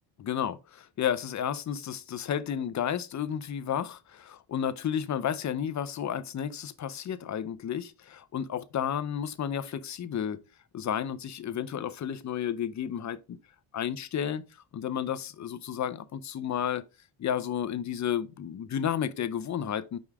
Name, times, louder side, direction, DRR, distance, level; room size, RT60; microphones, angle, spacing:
voice 1, 0.2-10.4 10.7-13.4 13.7-14.4 14.7-16.8 17.2-20.0, left 9 dB, 40° left, 0.6 m, -32 dB
5.4 x 4.9 x 3.5 m
cardioid pair, 110°, 47 cm